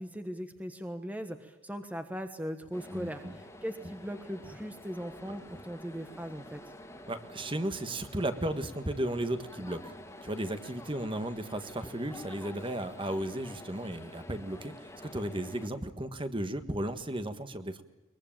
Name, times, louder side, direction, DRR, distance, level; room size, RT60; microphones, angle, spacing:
voice 1, 0.0-6.6, equal, 5° right, 7 dB, 1.2 m, -39 dB
sound 1, 2.7-15.7, left 1 dB, 15° left, 2.3 m, -49 dB
voice 2, 2.9-3.3 5.3-5.4 7.1-10.0 10.2-14.9 15.1-17.8, right 1 dB, 25° right, 9 dB, 1.5 m, -35 dB
22.5 x 22.0 x 8.9 m, 1.1 s
head